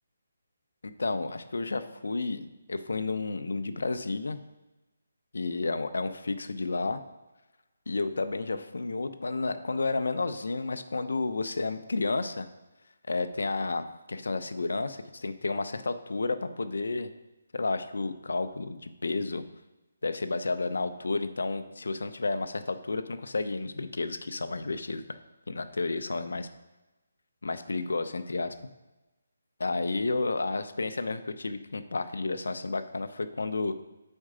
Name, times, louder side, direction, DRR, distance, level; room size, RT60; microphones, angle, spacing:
voice 1, 0.8-4.4 5.3-7.0 7.9-12.5 13.1-17.1 17.5-19.4 20.0-25.2 25.5-26.5 27.4-28.5 29.6-33.8, left 3 dB, 80° left, 9 dB, 0.7 m, -31 dB
7.4 x 4.5 x 5.0 m, 1.1 s
hypercardioid pair, 170°, 0 cm